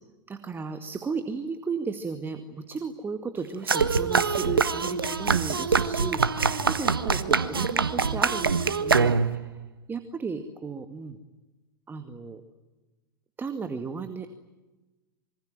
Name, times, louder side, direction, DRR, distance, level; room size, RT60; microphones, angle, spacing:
voice 1, 0.3-9.6 9.9-11.2 11.9-12.4 13.4-14.3, right 5 dB, 20° right, 8 dB, 2.2 m, -35 dB
sound 1, 3.7-9.5, right 5 dB, 90° right, 1.5 m, -24 dB
26.5 x 24.5 x 9.1 m, 1.1 s
hypercardioid pair, 100°, 12 cm